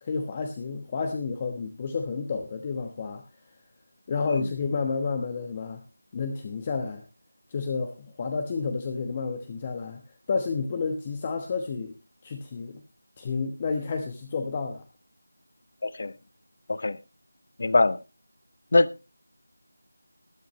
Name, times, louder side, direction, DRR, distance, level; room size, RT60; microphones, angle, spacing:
voice 1, 0.0-3.2 4.1-5.8 6.1-7.0 7.5-10.0 10.3-11.9 12.2-12.8 13.2-14.8, left 4 dB, 20° left, 1.1 m, -30 dB
voice 2, 15.8-16.1 16.7-17.0 17.6-18.0 18.7-18.9, left 2 dB, 45° left, 0.8 m, -21 dB
20.0 x 9.0 x 3.1 m
figure-of-eight pair, 170°, 0 cm